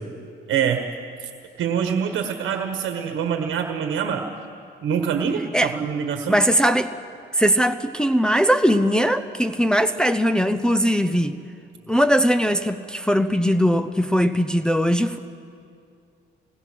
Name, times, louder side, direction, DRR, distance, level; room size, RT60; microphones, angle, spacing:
voice 1, 0.5-0.8 1.2-1.3 1.6-4.3 4.8-6.4, right 7 dB, 75° right, 5 dB, 1.3 m, -25 dB
voice 2, 6.3-6.9 7.3-11.4 11.9-15.2, equal, 5° left, 7 dB, 0.7 m, -20 dB
22.0 x 19.0 x 6.3 m, 2.5 s
cardioid pair, 90°, 20 cm